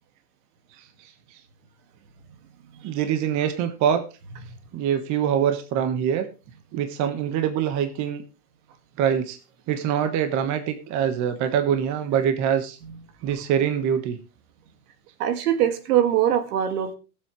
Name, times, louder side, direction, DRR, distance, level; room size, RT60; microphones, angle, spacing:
voice 1, 2.8-4.1 4.7-6.3 6.7-8.2 9.0-9.4 9.7-12.8 13.2-14.2, right 8 dB, 40° right, 8 dB, 1.4 m, -24 dB
voice 2, 15.2-16.9, right 10 dB, 75° right, 9 dB, 2.1 m, -22 dB
21.0 x 7.8 x 3.2 m, 0.32 s
supercardioid pair, 150°, 46 cm